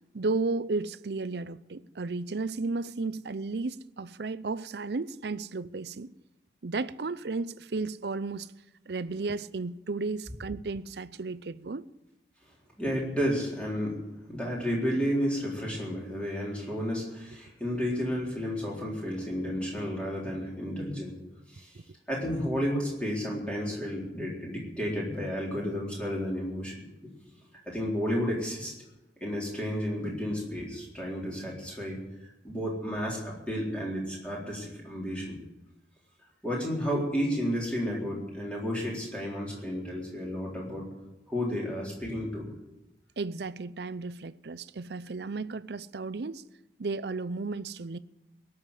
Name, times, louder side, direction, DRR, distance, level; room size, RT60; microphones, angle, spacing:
voice 1, 0.1-6.1 6.6-8.5 8.9-11.8 43.2-46.4 46.8-48.0, right 3 dB, 70° right, 0.6 m, -33 dB
voice 2, 12.8-14.0 14.3-21.1 21.5-21.7 22.1-26.8 27.7-28.7 29.2-32.0 32.4-35.4 36.4-40.9 41.3-42.5, equal, 5° left, 4.0 m, -32 dB
18.0 x 7.3 x 9.9 m
head